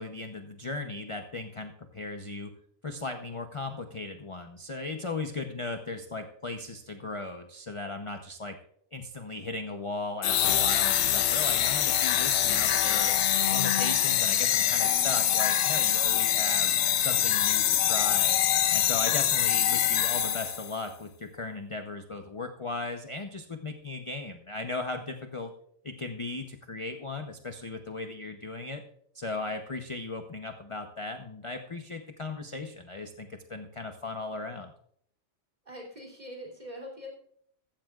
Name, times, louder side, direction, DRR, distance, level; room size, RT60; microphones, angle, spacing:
voice 1, 0.0-2.5 2.8-8.5 8.9-13.1 13.5-16.7 17.0-18.4 18.7-25.5 25.8-28.8 29.1-34.7, left 3 dB, 30° left, 5 dB, 0.6 m, -37 dB
sound 1, 10.2-20.8, left 10 dB, 60° left, 0.9 m, -24 dB
voice 2, 35.7-37.1, equal, 30° right, 0 dB, 3.2 m, -43 dB
15.5 x 13.5 x 2.4 m, 0.66 s
omnidirectional pair, 1.4 m